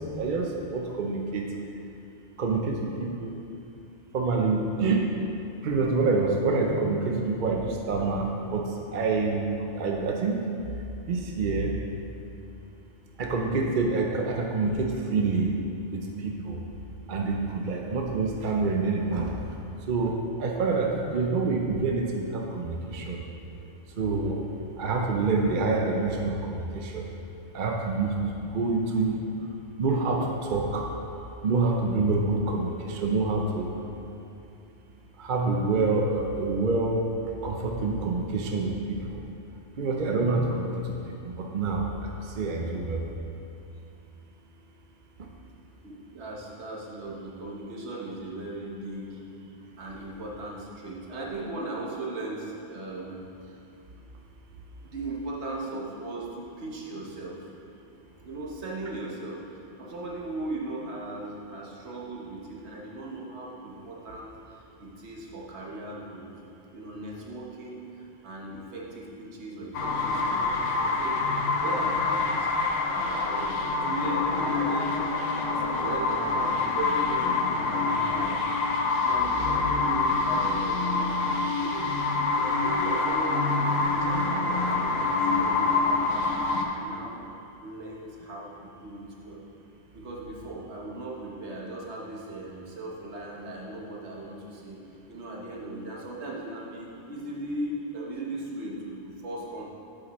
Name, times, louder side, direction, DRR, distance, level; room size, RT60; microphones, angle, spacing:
voice 1, 0.0-1.5 2.4-3.4 4.1-5.1 5.6-9.5 9.7-10.5 11.1-11.7 13.2-15.5 15.9-16.6 17.1-19.6 19.9-23.2 24.0-24.5 24.8-27.1 27.5-29.1 29.8-30.9 31.4-33.7 35.2-37.0 37.4-39.2 39.8-41.0 41.2-43.0 45.2-45.3, right 3 dB, 50° right, 0 dB, 0.7 m, -27 dB
voice 2, 45.8-49.2 49.8-53.6 54.8-57.5 58.2-59.4 59.8-66.3 66.7-72.7 72.9-75.1 75.5-78.4 79.0-81.2 81.6-81.8 82.4-87.2 87.6-89.4 89.9-94.8 95.1-99.7, right 2 dB, 65° right, -3 dB, 1.4 m, -38 dB
sound 1, 69.7-86.7, left 3 dB, 80° left, 1.1 m, -26 dB
8.3 x 7.7 x 3.1 m, 2.7 s
omnidirectional pair, 1.2 m